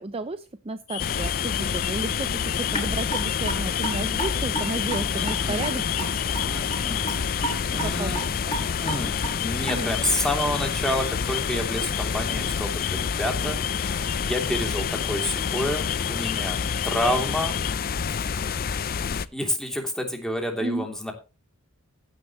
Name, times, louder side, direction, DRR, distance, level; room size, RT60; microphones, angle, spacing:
voice 1, 0.0-2.3 2.6-6.1 7.8-8.1 9.7-9.9 20.6-20.8, right 2 dB, 25° right, 12 dB, 0.6 m, -32 dB
sound 1, 0.9-17.7, left 16 dB, 90° left, 0.6 m, -34 dB
sound 2, 1.0-19.3, left 6 dB, 40° left, 0.5 m, -28 dB
Raindrop / Drip, 2.7-10.1, right 1 dB, 20° left, 6.5 m, -33 dB
voice 2, 5.1-5.7 6.4-7.1 7.7-8.2 8.8-13.6 14.2-17.6 19.1-21.1, left 1 dB, ahead, 2 dB, 3.0 m, -29 dB
15.0 x 9.9 x 3.1 m, 0.29 s
head